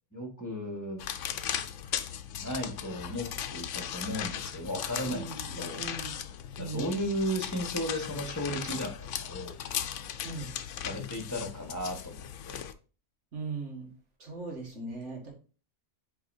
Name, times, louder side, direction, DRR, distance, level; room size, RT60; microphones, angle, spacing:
voice 1, 0.1-1.0 2.4-5.3 5.6-5.8 6.6-9.5 10.8-12.6, equal, 15° left, 2 dB, 1.6 m, -35 dB
sound 1, 1.0-12.7, left 9 dB, 80° left, 0.9 m, -37 dB
voice 2, 5.0-6.2 6.6-6.9 10.2-10.5 13.3-13.9 14.2-15.3, right 4 dB, 70° right, 1 dB, 2.2 m, -39 dB
8.1 x 4.7 x 2.7 m, 0.36 s
omnidirectional pair, 1.3 m